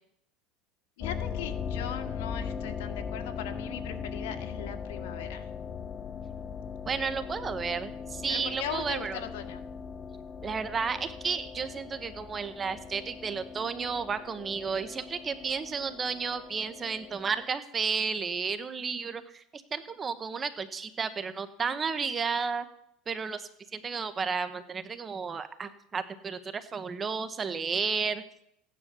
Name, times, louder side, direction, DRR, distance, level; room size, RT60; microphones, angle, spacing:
voice 1, 1.0-5.5 8.3-9.6, left 9 dB, 80° left, 6 dB, 2.0 m, -39 dB
sound 1, 1.0-17.5, left 6 dB, 30° left, 0.6 m, -39 dB
voice 2, 6.8-9.2 10.4-22.7 23.1-28.2, right 5 dB, 25° right, 11 dB, 1.1 m, -32 dB
15.5 x 10.0 x 6.8 m, 0.75 s
supercardioid pair, 130°, 0 cm